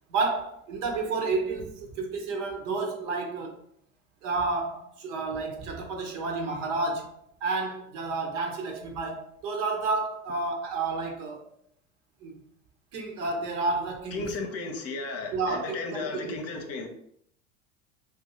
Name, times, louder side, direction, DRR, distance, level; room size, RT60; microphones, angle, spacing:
voice 1, 0.1-3.6 4.2-7.1 7.4-11.4 12.2-12.3 12.9-14.3 15.3-16.4, right 3 dB, 60° right, 1.1 m, -30 dB
voice 2, 14.1-16.9, left 3 dB, 35° left, 0.8 m, -34 dB
2.8 x 2.7 x 4.0 m
hypercardioid pair, 80°, 40 cm